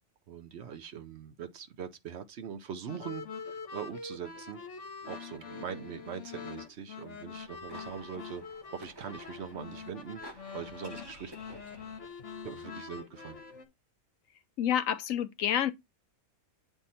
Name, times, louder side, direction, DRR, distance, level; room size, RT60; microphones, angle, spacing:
voice 1, 0.3-4.6 5.1-8.4 8.7-10.2 10.5-11.3 12.4-13.4, right 7 dB, 60° right, 0.9 m, -42 dB
sound 1, 2.9-13.6, left 5 dB, 60° left, 1.5 m, -44 dB
sound 2, 7.3-12.3, equal, 20° right, 1.0 m, -53 dB
voice 2, 14.6-15.7, left 10 dB, 75° left, 1.0 m, -28 dB
8.9 x 3.5 x 4.1 m
omnidirectional pair, 1.4 m